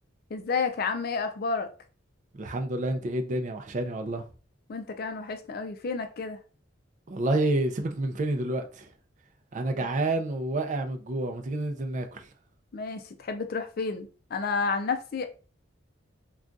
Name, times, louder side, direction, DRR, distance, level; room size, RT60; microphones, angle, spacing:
voice 1, 0.3-1.7 4.7-6.4 12.7-15.2, left 4 dB, 50° left, 0.4 m, -31 dB
voice 2, 2.3-4.2 7.1-8.9 9.5-12.3, right 2 dB, 40° right, 0.4 m, -29 dB
2.3 x 2.3 x 3.8 m
head